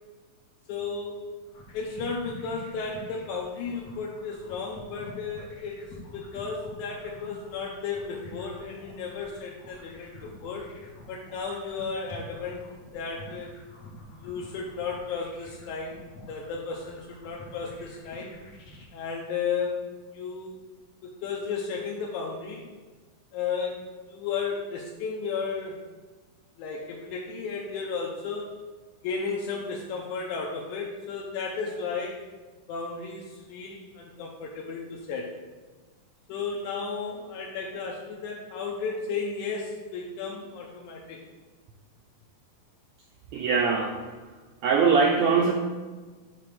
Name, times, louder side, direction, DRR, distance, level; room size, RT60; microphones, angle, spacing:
voice 1, 0.7-1.2 1.7-5.8 6.1-10.7 11.1-12.6 12.9-13.5 14.2-18.3 18.9-20.5 21.0-22.7 23.3-23.8 24.1-25.8 26.6-28.5 29.0-32.3 32.7-35.3 36.3-41.2, left 5 dB, 80° left, -2 dB, 2.1 m, -34 dB
sound 1, 1.4-18.9, left 1 dB, 60° left, 2.3 m, -47 dB
voice 2, 43.3-44.1 44.6-45.5, right 5 dB, 80° right, 0 dB, 1.6 m, -22 dB
6.9 x 3.2 x 5.7 m, 1.3 s
omnidirectional pair, 3.6 m